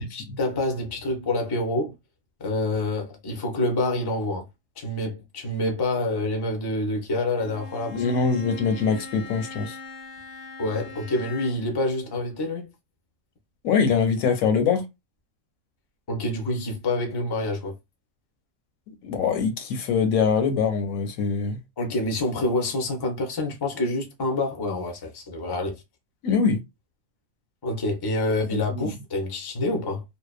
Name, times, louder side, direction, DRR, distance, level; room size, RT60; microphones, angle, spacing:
voice 1, 0.0-1.9 2.4-4.4 4.8-8.0 10.6-12.7 16.1-17.7 21.8-25.8 27.6-30.0, left 2 dB, 30° left, 0.4 m, -27 dB
Bowed string instrument, 7.3-11.8, left 2 dB, 65° left, 0.8 m, -40 dB
voice 2, 7.9-9.8 13.6-14.8 19.0-21.6 26.2-26.6 28.5-28.9, left 5 dB, 90° left, 1.1 m, -23 dB
2.7 x 2.0 x 2.4 m
omnidirectional pair, 1.4 m